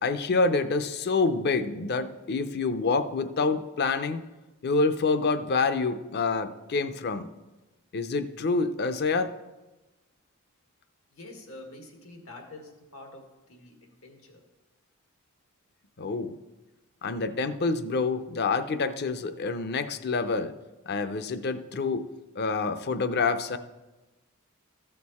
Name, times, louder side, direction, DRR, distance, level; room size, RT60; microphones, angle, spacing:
voice 1, 0.0-4.2 4.6-7.3 7.9-9.3 16.0-16.3 17.0-20.5 20.9-22.0 22.4-23.6, left 4 dB, 50° left, 11 dB, 0.6 m, -27 dB
voice 2, 11.1-14.4, left 2 dB, 90° left, 3 dB, 1.8 m, -47 dB
14.0 x 6.7 x 4.2 m, 1.1 s
head